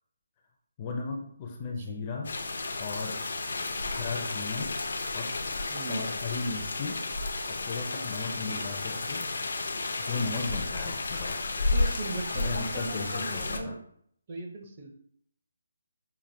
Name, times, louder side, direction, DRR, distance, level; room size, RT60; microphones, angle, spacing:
voice 1, 0.8-2.3 2.8-3.2 3.6-4.7 5.1-5.3 5.9-7.0 7.5-9.3 10.0-11.4 12.3-13.8, left 4 dB, 20° left, 1 dB, 0.4 m, -36 dB
sound 1, 2.2-13.6, left 3 dB, 75° left, 0.5 m, -32 dB
voice 2, 5.7-6.1 11.7-13.8 14.3-14.9, right 3 dB, 30° right, 2 dB, 0.5 m, -38 dB
5.6 x 2.4 x 2.6 m, 0.65 s
hypercardioid pair, 170°, 0 cm